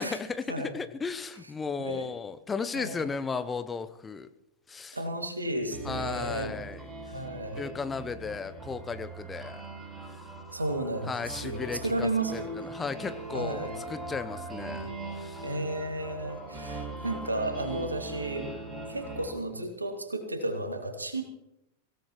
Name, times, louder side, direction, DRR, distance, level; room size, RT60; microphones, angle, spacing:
voice 1, 0.0-4.3 4.7-5.0 5.8-6.8 7.5-9.6 11.1-15.5, left 5 dB, 15° left, 11 dB, 0.9 m, -35 dB
voice 2, 2.7-3.1 4.9-6.6 7.1-7.7 10.5-12.5 13.3-13.7 15.4-18.5 18.9-21.2, right 1 dB, 80° right, 5 dB, 2.4 m, -33 dB
sound 1, 5.7-19.3, right 2 dB, 15° right, 4.9 m, -41 dB
24.0 x 17.0 x 3.1 m, 0.86 s
figure-of-eight pair, 90°, 0 cm